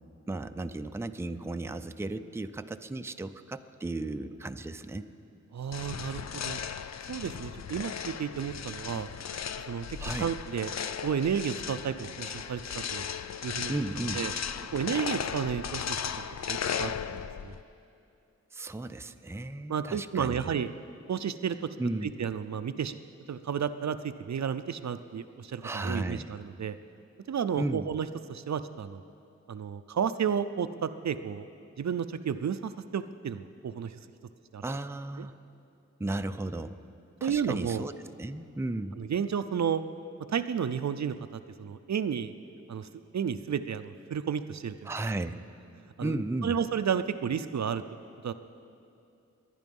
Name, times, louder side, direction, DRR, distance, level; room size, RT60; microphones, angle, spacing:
voice 1, 0.3-5.1 10.0-10.3 13.7-14.2 18.5-20.5 21.8-22.1 25.6-26.3 27.6-27.9 34.6-35.3 36.0-36.8 37.2-37.9 38.2-39.0 44.9-45.4 46.0-46.5, right 2 dB, 10° right, 9 dB, 0.4 m, -34 dB
voice 2, 5.5-6.6 7.1-9.1 9.6-9.9 10.2-10.7 11.0-13.1 13.4-13.8 14.1-14.3 14.7-17.6 19.7-20.7 21.1-21.7 22.0-23.0 23.3-26.8 27.3-29.0 29.5-31.5 31.8-33.9 34.5-34.6 35.2-35.3 37.2-37.8 39.0-39.8 40.3-42.3 42.7-42.9 43.1-44.9 46.0-47.8 48.2-48.3, right 7 dB, 65° right, 11 dB, 0.5 m, -32 dB
sound 1, 5.7-17.6, left 7 dB, 60° left, 0.5 m, -36 dB
22.0 x 10.5 x 5.4 m, 2.6 s
wide cardioid pair, 90°, 30 cm